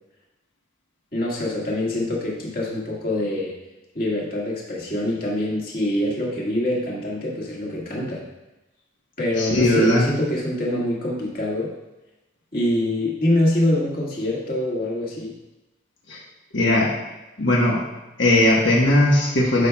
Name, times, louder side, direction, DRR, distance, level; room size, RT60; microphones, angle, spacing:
voice 1, 1.1-3.5 3.9-8.2 9.2-11.7 12.5-15.3, left 1 dB, 50° left, -4 dB, 1.8 m, -25 dB
voice 2, 9.4-10.1 16.1-16.2 16.5-16.9 17.4-17.8 18.2-19.7, left 1 dB, 80° left, -4 dB, 1.3 m, -18 dB
11.0 x 5.7 x 2.3 m, 1.0 s
head